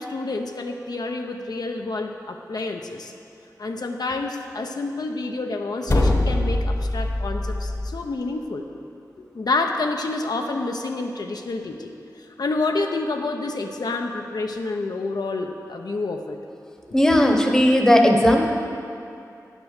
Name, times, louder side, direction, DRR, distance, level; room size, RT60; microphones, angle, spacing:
voice 1, 0.0-3.1 3.6-8.6 9.3-12.0 12.4-16.4, left 3 dB, 70° left, 3 dB, 0.6 m, -28 dB
sound 1, 5.9-7.9, left 1 dB, 40° left, 1.0 m, -22 dB
voice 2, 16.9-18.5, left 1 dB, 10° left, 2 dB, 0.9 m, -16 dB
10.0 x 6.3 x 6.4 m, 2.5 s
wide cardioid pair, 95°, 7 cm